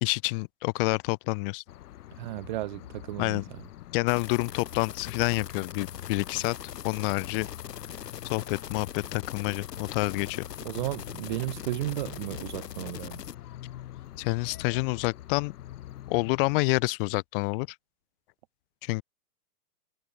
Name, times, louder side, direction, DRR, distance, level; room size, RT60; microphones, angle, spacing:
voice 1, 0.0-1.6 3.2-3.4 3.9-6.6 6.8-7.5 8.3-10.4 14.2-15.5 16.1-17.7 18.8-19.0, left 27 dB, 35° left, 0.9 m, -28 dB
sound 1, 1.7-16.6, left 13 dB, 70° left, 1.7 m, -45 dB
voice 2, 2.2-3.6 10.6-13.2, right 17 dB, 30° right, 0.5 m, -34 dB
sound 2, 4.1-13.3, left 9 dB, 85° left, 3.1 m, -41 dB
hypercardioid pair, 140°, 47 cm